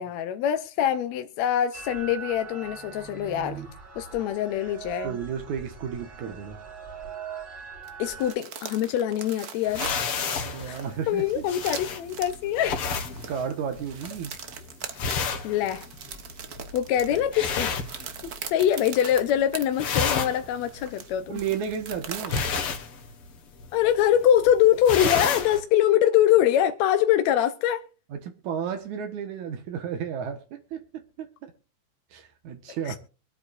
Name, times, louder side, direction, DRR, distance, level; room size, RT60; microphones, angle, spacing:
voice 1, 0.0-3.6 4.0-5.2 8.0-9.9 10.7-10.8 11.1-12.8 15.4-15.9 16.7-17.7 18.2-21.4 23.7-27.8 32.9-33.0, left 10 dB, 75° left, 1.9 m, -24 dB
sound 1, 1.7-8.3, right 7 dB, 40° right, 3.3 m, -40 dB
voice 2, 5.0-6.6 10.4-11.5 13.3-14.3 21.3-22.4 28.1-31.5 32.1-33.0, right 7 dB, 80° right, 2.7 m, -33 dB
sound 2, 7.8-19.7 20.1-20.2 20.6-22.7, right 7 dB, 65° right, 0.9 m, -40 dB
sound 3, 9.7-18.6 18.9-19.4 19.6-25.6, left 5 dB, 55° left, 2.1 m, -31 dB
24.5 x 8.9 x 2.5 m
omnidirectional pair, 3.4 m